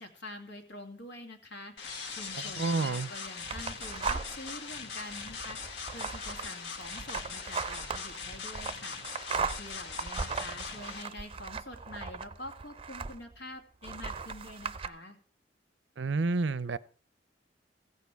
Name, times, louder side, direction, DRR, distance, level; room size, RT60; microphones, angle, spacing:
voice 1, 0.0-15.2, left 1 dB, 85° left, 4 dB, 2.4 m, -46 dB
sound 1, 1.8-11.0, left 5 dB, 70° left, 1.6 m, -41 dB
voice 2, 2.6-3.1 16.0-16.8, right 3 dB, 80° right, 17 dB, 0.6 m, -29 dB
sound 2, 3.5-4.5 5.0-13.4 13.8-14.9, right 5 dB, 30° right, 0.5 m, -38 dB
15.0 x 8.4 x 4.6 m, 0.41 s
head